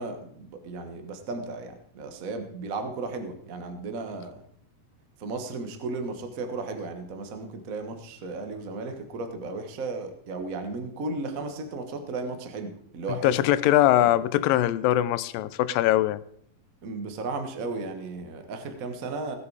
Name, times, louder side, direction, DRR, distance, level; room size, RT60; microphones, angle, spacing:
voice 1, 0.0-4.4 5.2-13.3 13.9-14.3 16.8-19.3, right 3 dB, 85° right, 6 dB, 0.7 m, -35 dB
voice 2, 13.2-16.2, left 14 dB, 85° left, 16 dB, 2.3 m, -22 dB
17.5 x 8.2 x 4.8 m, 0.64 s
omnidirectional pair, 3.9 m